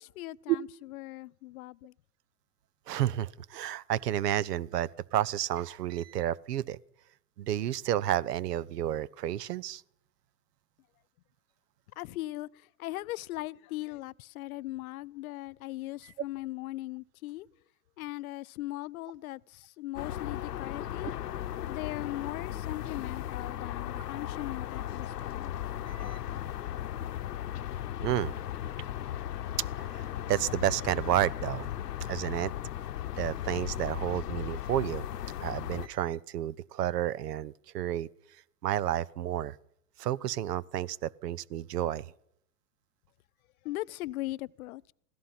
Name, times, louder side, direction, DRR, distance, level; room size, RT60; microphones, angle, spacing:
voice 1, 0.0-1.9 12.0-17.5 18.0-21.1 21.6-25.5 43.6-44.9, left 17 dB, 65° left, 0.6 m, -39 dB
voice 2, 2.9-6.8 7.4-9.8 25.9-26.2 28.0-28.3 29.8-31.7 32.1-32.5 33.2-35.0 35.4-38.1 38.6-39.6 40.0-42.1, right 12 dB, 80° right, 0.7 m, -31 dB
sound 1, 20.0-35.9, left 11 dB, 85° left, 0.9 m, -36 dB
16.5 x 14.0 x 5.7 m
hypercardioid pair, 115°, 47 cm